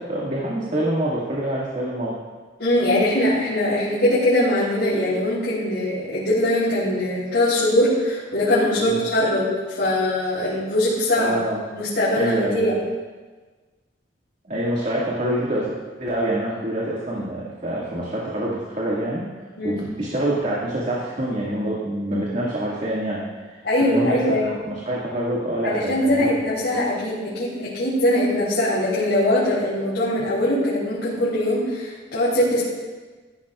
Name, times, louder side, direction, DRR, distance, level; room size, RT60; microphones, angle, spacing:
voice 1, 0.1-2.1 8.8-9.0 10.4-10.5 11.1-11.6 12.2-12.8 14.5-15.7 16.0-19.2 19.6-24.4 24.7-26.8, right 1 dB, 45° right, -6 dB, 2.1 m, -26 dB
voice 2, 2.6-11.3 11.7-12.8 19.6-19.8 23.6-24.5 25.6-32.6, left 1 dB, 90° left, -10 dB, 4.0 m, -21 dB
15.5 x 13.5 x 2.5 m, 1.4 s
head